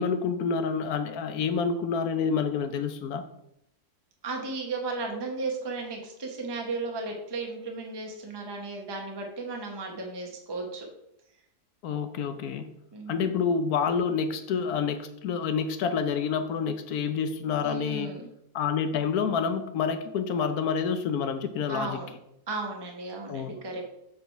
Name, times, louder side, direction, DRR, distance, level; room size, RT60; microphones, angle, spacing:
voice 1, 0.0-3.2 11.8-12.7 13.1-18.1 18.5-22.0 23.3-23.5, left 6 dB, 75° left, 8 dB, 1.1 m, -28 dB
voice 2, 4.2-10.9 12.9-13.3 17.6-18.3 21.7-22.1 22.5-23.8, right 3 dB, 20° right, 1 dB, 0.9 m, -35 dB
7.5 x 4.0 x 4.5 m, 0.79 s
omnidirectional pair, 1.6 m